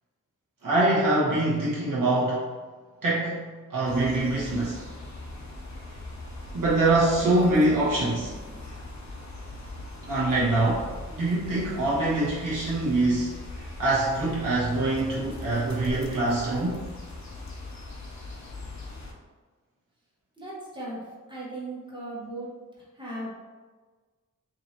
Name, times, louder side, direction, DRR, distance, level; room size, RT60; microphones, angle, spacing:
voice 1, 0.6-2.5 3.0-4.8 6.5-8.3 10.1-13.3 13.8-16.8, right 2 dB, 75° right, -8 dB, 1.1 m, -24 dB
sound 1, 3.8-19.1, left 2 dB, 55° left, 0.7 m, -40 dB
voice 2, 20.4-21.0 21.3-22.5 22.9-23.3, right 1 dB, 15° right, -7 dB, 1.2 m, -37 dB
4.7 x 2.8 x 2.9 m, 1.4 s
wide cardioid pair, 70°, 32 cm